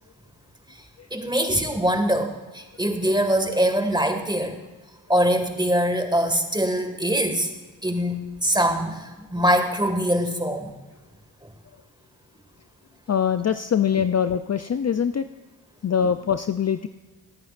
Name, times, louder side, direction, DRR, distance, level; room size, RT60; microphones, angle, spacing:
voice 1, 1.1-4.5 5.1-7.5 7.8-10.7, equal, 10° right, 5 dB, 1.9 m, -23 dB
voice 2, 13.1-15.3 15.8-16.9, left 8 dB, 40° left, 10 dB, 0.5 m, -23 dB
20.5 x 9.3 x 2.5 m, 1.2 s
cardioid pair, 45°, 42 cm